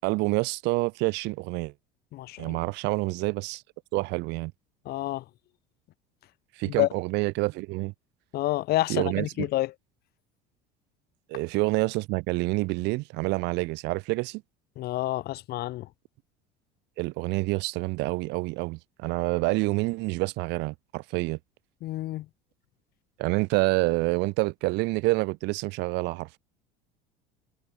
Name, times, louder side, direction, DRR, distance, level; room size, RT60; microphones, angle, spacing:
voice 1, 0.0-1.7 2.4-3.6 3.9-4.5 6.6-7.9 8.9-9.5 11.3-14.4 17.0-21.4 23.2-26.4, right 24 dB, 70° right, 6.9 m, -27 dB
voice 2, 2.1-2.6 4.9-5.2 6.6-6.9 8.3-9.7 14.8-15.9 21.8-22.3, left 16 dB, 60° left, 3.6 m, -28 dB
supercardioid pair, 90°, 19 cm